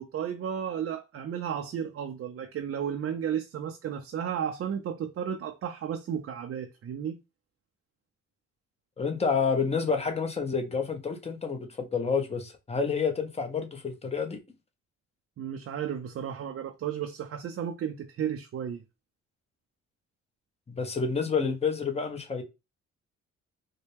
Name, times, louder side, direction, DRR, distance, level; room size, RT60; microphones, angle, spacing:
voice 1, 0.0-7.2 15.4-18.8, right 8 dB, 45° right, 0.5 m, -33 dB
voice 2, 9.0-14.4 20.7-22.4, left 5 dB, 20° left, 0.9 m, -29 dB
4.1 x 2.2 x 3.3 m
cardioid pair, 90°, 30 cm